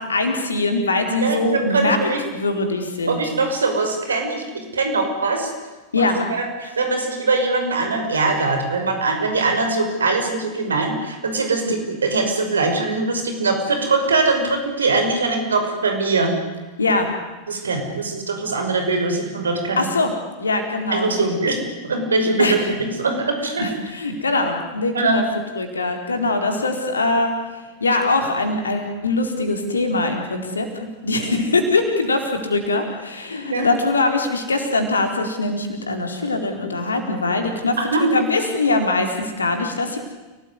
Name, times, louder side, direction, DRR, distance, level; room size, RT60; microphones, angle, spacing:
voice 1, 0.0-2.0 2.3-3.2 5.9-6.3 11.6-11.7 16.8-17.1 19.8-20.1 20.4-21.3 22.4-22.8 23.6-25.2 25.6-27.3 27.8-40.0, left 2 dB, 75° left, 5 dB, 4.4 m, -22 dB
voice 2, 1.2-2.2 3.1-5.5 6.0-16.3 17.5-19.9 20.9-21.6 21.8-22.6 23.0-23.7 24.9-25.3 33.5-33.7 37.8-38.1, right 3 dB, 70° right, 5 dB, 5.9 m, -22 dB
29.5 x 19.0 x 9.9 m, 1.2 s
figure-of-eight pair, 90°, 0 cm